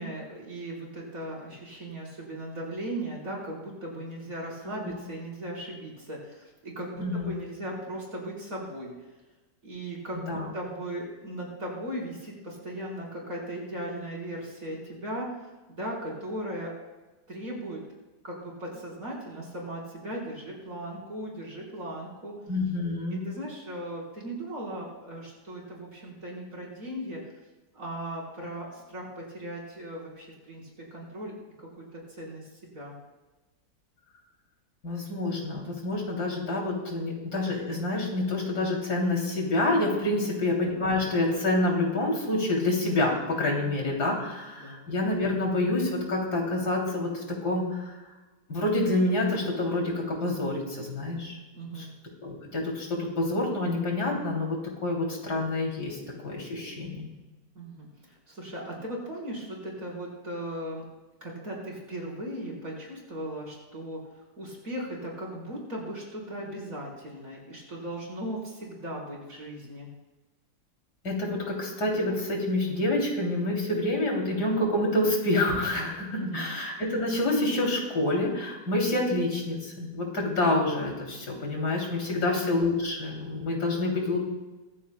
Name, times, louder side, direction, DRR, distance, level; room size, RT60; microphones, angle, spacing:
voice 1, 0.0-8.9 9.6-15.3 15.8-16.7 17.3-17.8 18.2-22.3 23.2-27.2 27.7-30.6 30.9-32.9 40.1-40.4 43.6-43.9 44.6-44.9 51.5-51.9 57.5-57.9 58.3-60.8 61.2-64.0 64.4-69.9 76.1-76.5 82.1-82.3, right 1 dB, 55° right, -3 dB, 5.0 m, -37 dB
voice 2, 7.0-7.3 10.1-10.5 22.5-23.2 34.8-47.9 48.5-51.4 51.8-51.9 52.2-56.0 56.2-57.1 71.0-84.2, left 2 dB, 75° left, -1 dB, 3.7 m, -27 dB
23.0 x 15.0 x 2.3 m, 1.2 s
omnidirectional pair, 1.7 m